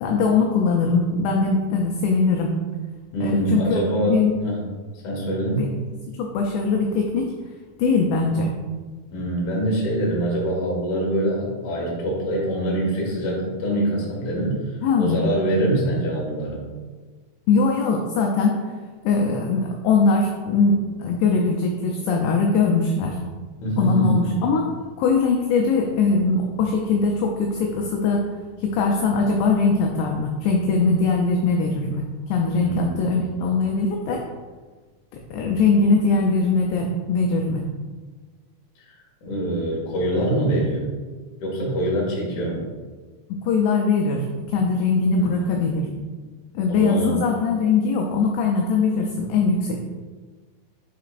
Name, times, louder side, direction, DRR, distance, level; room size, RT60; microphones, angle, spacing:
voice 1, 0.0-2.5 3.2-3.8 4.1-4.4 5.5-5.8 6.2-7.3 7.8-8.5 14.8-15.2 17.5-18.6 19.1-23.2 23.8-24.7 25.0-28.2 28.6-34.2 35.1-37.6 43.3-45.9 46.6-49.8, left 4 dB, 80° left, 1 dB, 2.6 m, -21 dB
voice 2, 3.1-4.6 5.0-5.7 9.1-16.6 23.6-24.3 32.6-33.1 38.8-39.0 39.2-40.8 41.4-42.6 45.2-45.3 45.7-46.0 46.7-47.2, right 1 dB, 55° left, -4 dB, 2.4 m, -24 dB
8.4 x 5.0 x 2.5 m, 1.4 s
omnidirectional pair, 5.4 m